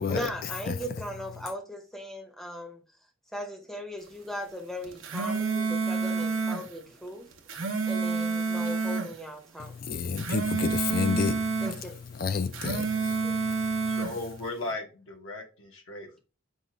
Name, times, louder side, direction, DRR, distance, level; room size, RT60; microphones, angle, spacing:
voice 1, 0.0-2.8 3.3-7.3 7.8-9.8 11.6-12.0 12.9-13.3, equal, ahead, 0.6 m, -38 dB
sound 1, 4.8-6.7 7.3-9.1 10.0-11.8 12.4-14.2, right 4 dB, 75° right, 0.7 m, -29 dB
voice 2, 9.6-11.6 12.1-14.0, left 5 dB, 45° left, 0.3 m, -30 dB
voice 3, 13.9-16.2, left 2 dB, 75° left, 1.1 m, -37 dB
5.3 x 2.3 x 3.2 m
head